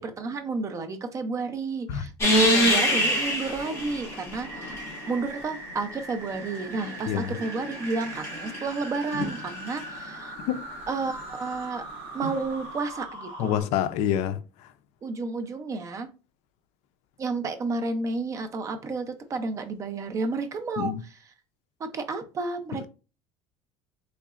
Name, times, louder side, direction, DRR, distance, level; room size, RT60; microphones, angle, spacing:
voice 1, 0.0-10.4 10.9-11.8 12.1-13.7 15.0-16.1 17.2-21.2 21.8-22.9, right 3 dB, 25° right, 0.5 m, -31 dB
sound 1, 2.2-5.3 6.4-9.9 12.2-12.3, equal, 20° left, 1.8 m, -26 dB
sound 2, 4.4-13.6, right 2 dB, 40° right, 1.6 m, -41 dB
voice 2, 13.4-14.4 20.8-21.0, left 10 dB, 60° left, 0.4 m, -26 dB
3.9 x 3.2 x 2.4 m
cardioid pair, 160°, 13 cm